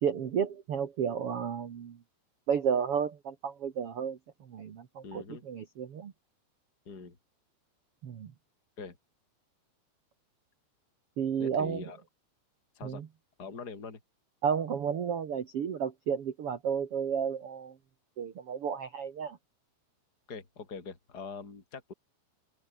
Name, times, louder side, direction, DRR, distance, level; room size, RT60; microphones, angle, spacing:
voice 1, 0.0-2.0 2.5-6.1 8.0-8.3 11.2-11.8 12.8-13.1 14.4-17.7 18.2-19.4, right 7 dB, 60° right, 1.5 m, -32 dB
voice 2, 5.0-5.4 6.9-7.2 8.8-9.0 11.4-12.0 12.7-13.0 13.4-14.0 20.3-21.9, left 4 dB, 20° left, 4.3 m, -43 dB
open air
omnidirectional pair, 5.1 m